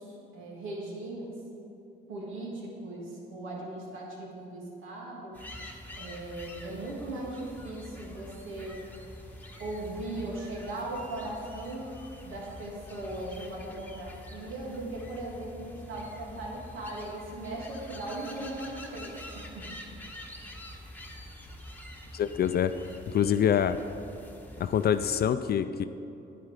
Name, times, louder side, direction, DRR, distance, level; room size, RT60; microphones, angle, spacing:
voice 1, 0.0-1.4 2.1-5.4 5.9-8.8 9.6-11.9 12.2-19.7, right 2 dB, 80° right, -3 dB, 2.6 m, -38 dB
sound 1, 5.3-25.3, left 1 dB, 10° left, 1.2 m, -46 dB
voice 2, 22.1-22.7 23.1-23.8 24.6-25.9, left 9 dB, 55° left, 11 dB, 0.4 m, -25 dB
9.6 x 9.4 x 4.9 m, 2.8 s
cardioid pair, 90°, 20 cm